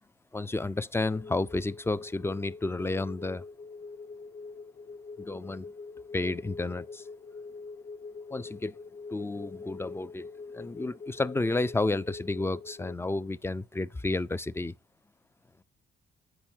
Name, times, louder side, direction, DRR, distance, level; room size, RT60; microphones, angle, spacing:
voice 1, 0.3-3.4 5.2-5.7 6.1-7.0 8.3-8.7 9.1-10.3 10.5-14.8, left 2 dB, 10° left, 0.3 m, -31 dB
sound 1, 0.9-12.9, left 4 dB, 50° left, 0.8 m, -44 dB
8.6 x 5.4 x 4.4 m
cardioid pair, 90°, 20 cm